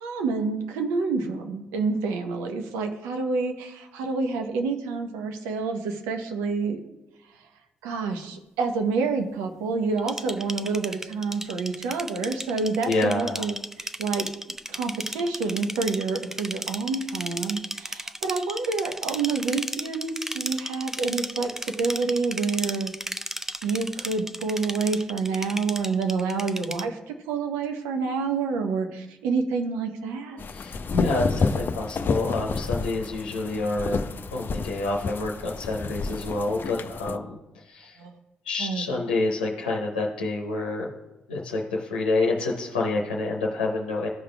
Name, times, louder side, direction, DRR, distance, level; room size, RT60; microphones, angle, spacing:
voice 1, 0.0-6.8 7.8-14.3 14.7-21.5 21.8-22.9 23.6-30.4 38.0-38.1 38.6-38.8, right 4 dB, 75° right, 5 dB, 0.8 m, -28 dB
sound 1, 10.0-26.8, right 1 dB, 10° right, 0.4 m, -34 dB
voice 2, 12.8-13.4 30.5-34.0 34.3-38.0 38.4-40.9 41.3-44.1, left 2 dB, 90° left, -3 dB, 0.7 m, -28 dB
sound 2, 30.4-37.2, left 4 dB, 45° left, 0.5 m, -30 dB
14.0 x 5.0 x 2.2 m, 0.98 s
hypercardioid pair, 45°, 5 cm